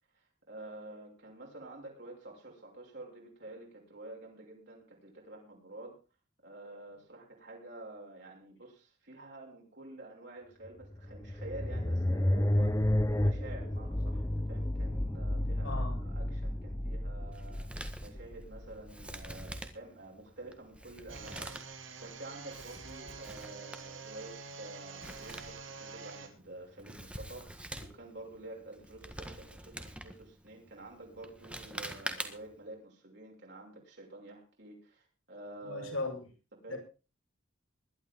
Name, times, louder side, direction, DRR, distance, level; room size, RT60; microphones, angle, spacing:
voice 1, 0.1-6.0 6.4-36.0 36.6-36.8, right 2 dB, 60° right, -1 dB, 6.0 m, -49 dB
sound 1, 10.8-19.2, left 1 dB, 15° left, 0.7 m, -32 dB
voice 2, 15.6-16.0 35.6-36.3 36.7-36.8, left 3 dB, 85° left, 4 dB, 5.0 m, -37 dB
Male speech man speaking, 17.3-32.6, right 1 dB, 5° right, 1.6 m, -46 dB
sound 2, 21.1-26.3, right 4 dB, 75° right, 3.1 m, -47 dB
21.0 x 12.0 x 3.8 m, 0.34 s
head